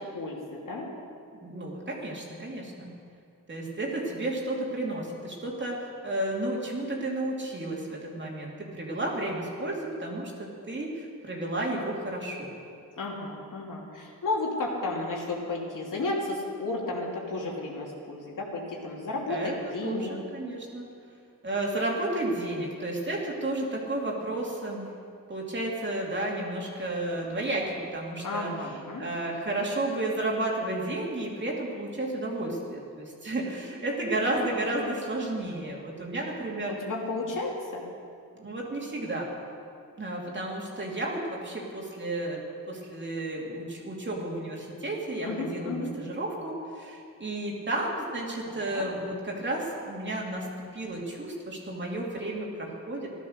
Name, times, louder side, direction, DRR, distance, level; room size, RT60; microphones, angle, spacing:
voice 1, 0.1-0.9 13.0-20.1 28.2-29.0 36.8-37.8 45.2-45.9 48.5-48.8, left 2 dB, 65° left, -2 dB, 3.0 m, -33 dB
voice 2, 1.4-2.9 3.5-12.5 19.3-19.6 19.8-20.9 21.4-24.9 25.3-28.7 29.0-36.8 38.3-39.3 40.0-42.4 42.7-50.5 50.7-53.1, right 1 dB, 35° right, -2 dB, 2.8 m, -32 dB
15.0 x 12.0 x 6.6 m, 2.4 s
cardioid pair, 100°, 34 cm